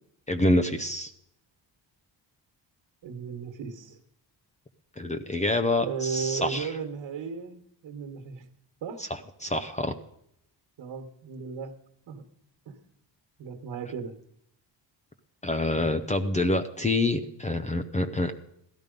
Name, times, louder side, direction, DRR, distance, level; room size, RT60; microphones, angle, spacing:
voice 1, 0.3-1.1 5.0-6.7 9.1-10.0 15.4-18.3, left 2 dB, 15° left, 7 dB, 0.6 m, -26 dB
voice 2, 3.0-4.0 5.9-8.5 8.8-9.1 10.8-11.7 12.1-12.2 12.7-12.8 13.4-14.1, right 6 dB, 65° right, 3 dB, 1.6 m, -35 dB
17.0 x 12.5 x 5.3 m, 0.74 s
wide cardioid pair, 180°, 44 cm